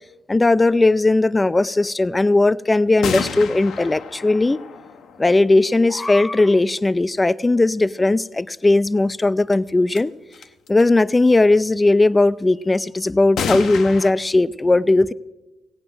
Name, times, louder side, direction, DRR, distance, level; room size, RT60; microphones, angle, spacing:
voice 1, 0.3-4.6 5.2-10.1 10.7-15.1, left 2 dB, 20° left, 0.4 m, -17 dB
sound 1, 3.0-5.9 9.5-9.6 9.9-10.0 10.3-10.8 13.4-14.1, left 6 dB, 75° left, 1.0 m, -30 dB
16.0 x 8.8 x 7.7 m
cardioid pair, 90°, 0 cm